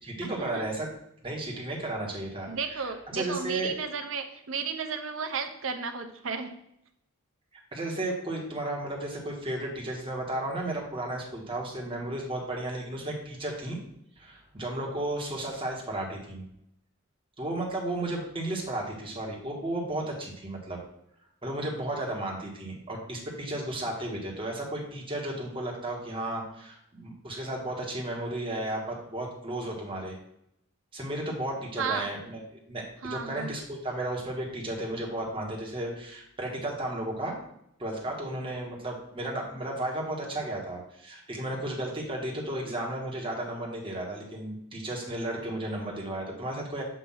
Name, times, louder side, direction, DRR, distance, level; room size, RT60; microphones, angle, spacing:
voice 1, 0.0-0.9 1.2-3.7 7.7-13.8 14.2-16.4 17.4-20.8 21.4-30.2 30.9-32.4 32.7-37.4 37.8-46.8, right 1 dB, 25° right, -2 dB, 1.3 m, -34 dB
voice 2, 2.5-6.5 31.8-32.1 33.0-33.5, right 5 dB, 70° right, 7 dB, 0.7 m, -33 dB
7.4 x 2.7 x 5.6 m, 0.76 s
head